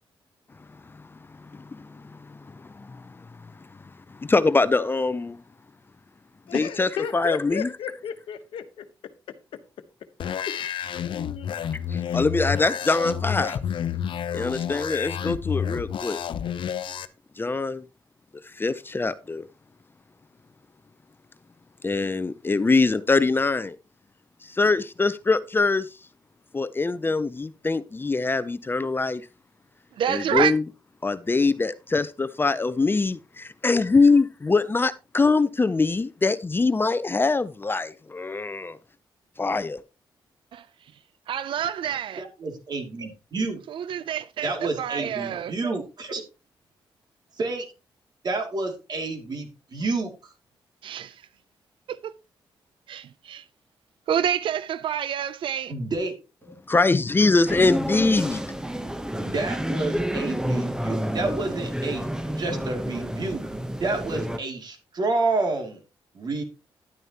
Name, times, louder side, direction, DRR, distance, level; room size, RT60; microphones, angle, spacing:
voice 1, 0.9-3.3 4.1-5.4 6.5-7.7 11.9-13.6 14.3-16.2 17.4-17.8 18.6-19.5 21.8-23.8 24.4-25.9 26.5-29.3 30.1-30.6 31.0-38.8 39.4-39.8 56.7-58.4, left 3 dB, 25° left, 0.5 m, -23 dB
voice 2, 6.5-8.9 9.3-9.6 10.4-11.6, left 8 dB, 85° left, 1.0 m, -35 dB
sound 1, 10.2-17.0, left 8 dB, 70° left, 0.6 m, -30 dB
voice 3, 30.0-30.5 40.5-40.6 41.3-42.2 43.7-45.5 50.8-51.1 51.9-52.1 52.9-53.4 54.1-55.7, right 9 dB, 75° right, 0.4 m, -28 dB
voice 4, 42.2-43.6 44.4-46.2 47.4-47.7 48.2-50.1 55.7-56.1 56.4-56.5 59.2-62.1 62.4-63.4 63.8-65.8 66.1-66.4, right 3 dB, 55° right, 2.5 m, -29 dB
sound 2, 57.5-64.4, equal, 10° right, 0.9 m, -29 dB
11.0 x 9.0 x 2.9 m
cardioid pair, 85°, 9 cm